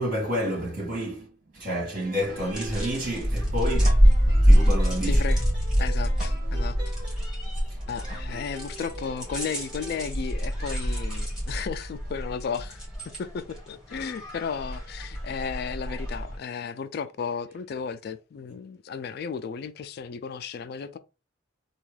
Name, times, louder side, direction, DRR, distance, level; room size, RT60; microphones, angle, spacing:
voice 1, 0.0-4.0 4.4-5.2, equal, 45° right, 2.1 m, -30 dB
sound 1, 2.0-3.7 4.0-7.7 8.0-10.0, right 2 dB, 25° right, 1.8 m, -45 dB
sound 2, 2.2-16.4, equal, 5° right, 1.6 m, -25 dB
voice 2, 5.1-5.4 5.8-6.8 7.9-12.9 13.2-21.0, left 6 dB, 55° left, 0.3 m, -34 dB
3.5 x 2.3 x 3.2 m
head